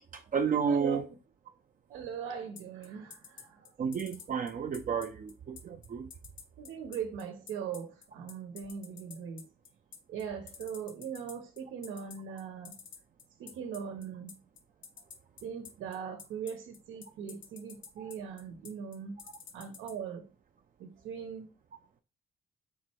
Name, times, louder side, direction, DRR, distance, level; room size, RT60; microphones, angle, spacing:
voice 1, 0.1-1.0 3.8-6.1 18.0-18.1, right 6 dB, 45° right, 0.6 m, -31 dB
voice 2, 0.7-1.0 1.9-3.7 6.6-9.5 10.1-12.8 13.4-14.4 15.4-19.2 19.5-20.3 20.8-21.5, right 7 dB, 90° right, 1.2 m, -40 dB
sound 1, 2.6-19.9, left 7 dB, 75° left, 1.7 m, -48 dB
6.4 x 3.2 x 4.6 m
cardioid pair, 90°, 20 cm